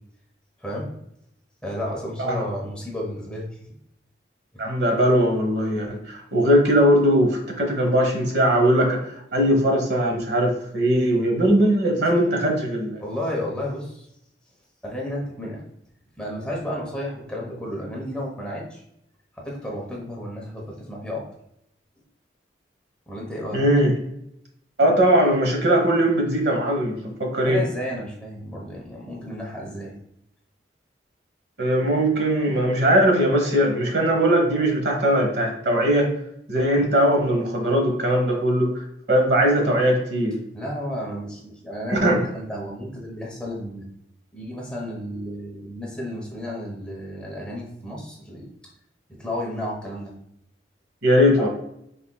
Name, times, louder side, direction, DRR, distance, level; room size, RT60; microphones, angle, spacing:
voice 1, 0.6-0.9 1.6-3.5 4.5-4.7 13.0-14.1 14.8-15.6 16.2-18.8 19.4-21.2 23.1-23.6 27.4-30.0 40.5-43.8 44.3-48.5 49.2-50.1 51.4-51.5, left 1 dB, 5° left, -3 dB, 1.0 m, -32 dB
voice 2, 4.6-9.0 9.3-13.0 23.5-23.9 24.8-27.6 31.6-36.1 36.5-40.4 41.9-42.2 51.0-51.5, equal, 65° right, 1 dB, 1.1 m, -20 dB
5.7 x 3.7 x 2.3 m, 0.78 s
head